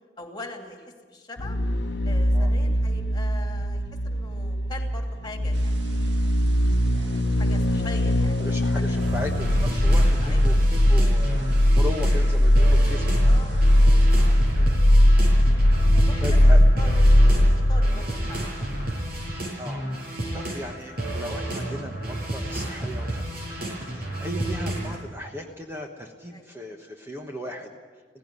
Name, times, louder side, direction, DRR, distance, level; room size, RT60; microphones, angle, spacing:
voice 1, 0.2-1.6 2.0-6.2 6.9-9.0 10.2-10.4 13.2-14.7 15.9-16.9 17.3-18.7 18.9-19.1 26.3-26.5, left 2 dB, 25° left, 3 dB, 2.7 m, -43 dB
sound 1, 1.4-18.9 19.2-19.3, equal, 75° left, 1.0 m, -20 dB
sound 2, 5.5-14.1, right 1 dB, 80° right, 1.5 m, -43 dB
voice 2, 8.4-11.4 11.7-13.2 14.6-15.0 16.2-16.6 19.6-19.8 20.3-27.7, left 1 dB, 15° right, 2 dB, 1.3 m, -37 dB
sound 3, 9.0-25.0, right 1 dB, 60° right, 6.6 m, -31 dB
17.5 x 16.0 x 9.7 m, 1.5 s
head